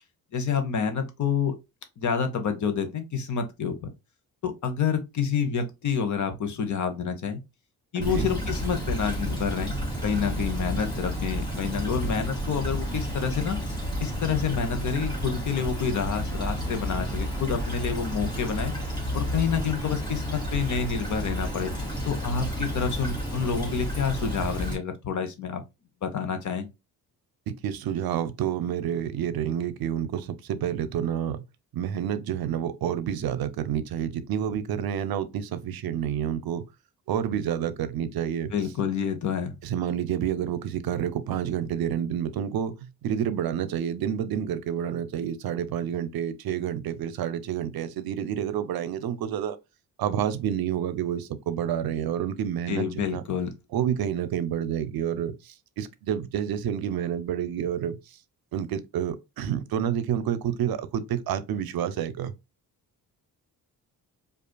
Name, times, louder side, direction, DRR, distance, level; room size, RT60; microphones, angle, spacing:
voice 1, 0.3-1.5 2.0-3.8 4.4-7.4 7.9-9.7 10.0-18.7 19.1-21.7 22.0-25.6 26.0-26.7 38.5-39.5 52.7-53.5, left 6 dB, 50° left, 0.8 m, -28 dB
Stream / Trickle dribble, 8.0-24.7, equal, 10° left, 1.7 m, -31 dB
voice 2, 8.0-8.3 27.5-31.4 31.7-36.6 37.1-38.5 39.6-49.6 50.0-53.2 53.7-58.2 58.5-62.3, right 9 dB, 75° right, 0.6 m, -29 dB
4.9 x 2.5 x 2.2 m
cardioid pair, 115°, 37 cm